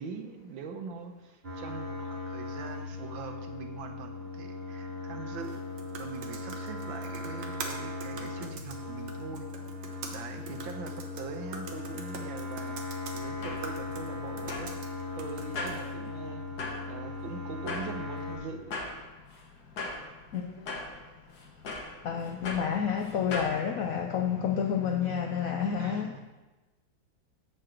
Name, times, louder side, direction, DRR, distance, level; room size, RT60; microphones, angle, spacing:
voice 1, 0.0-5.6 6.0-9.5 10.1-14.7 15.2-16.4 16.9-18.8 25.8-26.2, right 5 dB, 80° right, 1.6 m, -42 dB
sound 1, 1.4-18.4, left 3 dB, 30° right, 1.8 m, -38 dB
sound 2, 5.4-15.9, right 4 dB, 60° right, 1.4 m, -45 dB
sound 3, 13.1-23.6, left 3 dB, 60° left, 1.6 m, -41 dB
voice 2, 20.3-20.6 22.0-26.2, left 7 dB, 80° left, 0.7 m, -29 dB
8.7 x 4.4 x 6.3 m
omnidirectional pair, 2.1 m